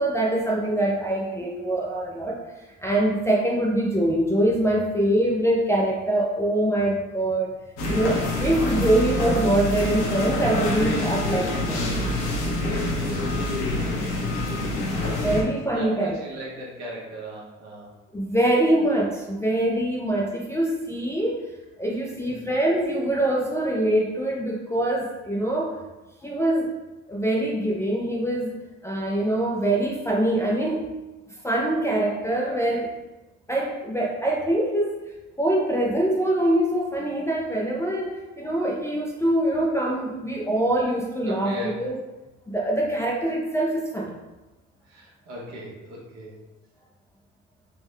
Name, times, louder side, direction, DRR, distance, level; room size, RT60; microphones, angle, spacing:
voice 1, 0.0-2.4 2.8-7.6 7.9-11.9 15.2-16.2 18.1-21.4 21.8-25.8 26.2-26.7 27.1-28.5 28.8-30.8 31.4-32.9 33.5-34.9 35.4-41.9 42.5-44.1, right 1 dB, 10° left, -4 dB, 0.3 m, -24 dB
sound 1, 7.8-15.4, left 1 dB, 85° left, 0.9 m, -26 dB
voice 2, 13.0-14.1 14.4-15.3 15.7-17.9 22.1-22.5 41.3-41.8 44.9-46.3, equal, 65° right, -4 dB, 1.1 m, -38 dB
3.5 x 2.1 x 3.3 m, 1.1 s
cardioid pair, 115°, 29 cm